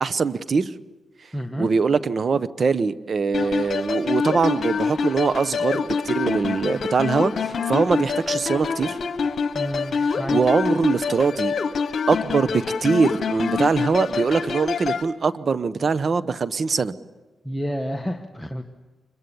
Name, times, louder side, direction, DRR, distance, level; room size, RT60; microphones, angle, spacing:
voice 1, 0.0-0.7 1.6-9.0 10.3-11.5 12.1-16.9, right 5 dB, 50° right, 14 dB, 1.0 m, -22 dB
voice 2, 1.3-1.7 9.5-10.4 17.4-18.6, equal, 5° left, 3 dB, 1.5 m, -30 dB
sound 1, 3.3-15.0, left 5 dB, 65° left, 1.3 m, -26 dB
25.5 x 22.5 x 7.1 m, 1.2 s
cardioid pair, 75°, 0 cm